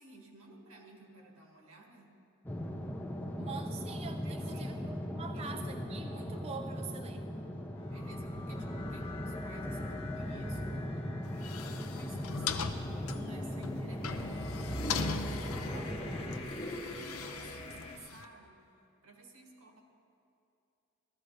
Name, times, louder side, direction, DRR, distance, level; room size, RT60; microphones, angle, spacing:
voice 1, 0.0-2.1 4.2-4.8 5.3-5.8 7.8-11.2 11.7-18.7 19.0-19.8, right 2 dB, 85° right, 0 dB, 1.9 m, -55 dB
sound 1, 2.5-16.4, left 1 dB, 10° left, 0.6 m, -39 dB
voice 2, 3.4-7.3, right 5 dB, 30° right, 5 dB, 0.4 m, -45 dB
sound 2, 7.8-18.0, left 1 dB, 30° left, 1.1 m, -43 dB
sound 3, 11.2-18.3, left 5 dB, 80° left, 0.6 m, -40 dB
16.0 x 14.0 x 3.3 m, 2.6 s
head